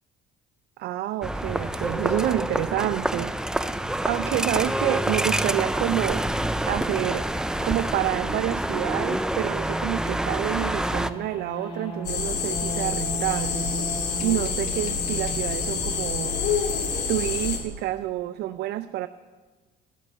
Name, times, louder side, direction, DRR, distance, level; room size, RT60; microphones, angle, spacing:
voice 1, 0.8-3.3 4.1-7.3 7.6-13.7 14.2-16.4 17.1-19.1, right 14 dB, 75° right, 9 dB, 0.5 m, -28 dB
sound 1, 1.2-11.1, right 1 dB, 5° right, 0.4 m, -27 dB
sound 2, 7.6-17.8, right 1 dB, 30° left, 2.9 m, -39 dB
sound 3, 12.0-17.6, left 6 dB, 85° left, 2.2 m, -27 dB
13.0 x 8.2 x 8.3 m, 1.3 s
cardioid pair, 110°, 17 cm